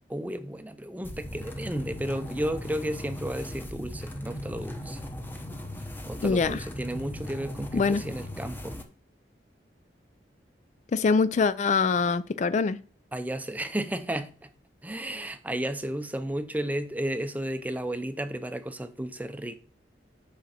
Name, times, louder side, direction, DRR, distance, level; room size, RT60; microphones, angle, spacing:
voice 1, 0.1-5.0 6.1-8.8 13.1-14.5 14.8-19.6, right 1 dB, 10° right, 0.6 m, -33 dB
sound 1, 1.0-8.8, left 1 dB, 10° left, 0.9 m, -38 dB
voice 2, 6.2-6.6 7.7-8.0 10.9-12.8, left 4 dB, 45° left, 0.3 m, -24 dB
6.6 x 5.1 x 5.9 m
head